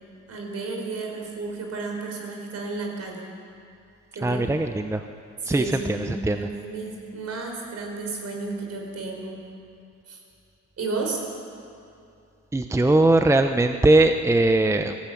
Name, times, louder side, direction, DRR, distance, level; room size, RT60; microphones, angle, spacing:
voice 1, 0.3-3.3 4.1-4.5 5.4-9.3 10.1-10.2 10.8-11.2, right 3 dB, 55° right, 1 dB, 5.2 m, -32 dB
voice 2, 4.2-5.0 5.5-6.4 12.5-15.0, right 2 dB, 10° right, 7 dB, 0.8 m, -20 dB
17.5 x 16.0 x 9.3 m, 2.5 s
cardioid pair, 90°, 30 cm